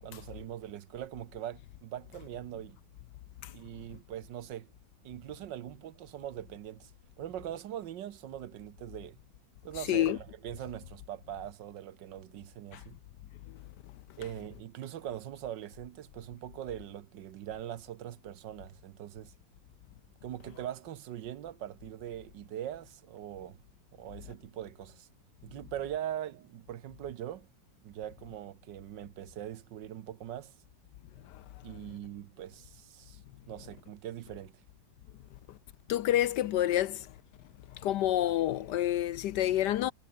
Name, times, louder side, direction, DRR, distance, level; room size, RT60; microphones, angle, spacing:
voice 1, 0.0-2.8 3.5-4.7 5.0-6.9 7.2-9.2 9.6-13.0 14.2-19.3 20.2-23.6 23.9-25.1 25.4-27.5 27.8-30.5 31.6-33.2 33.5-34.5, right 11 dB, 70° right, 1.5 m, -41 dB
voice 2, 35.9-37.1 37.8-39.9, left 13 dB, 70° left, 1.1 m, -28 dB
omnidirectional pair, 2.1 m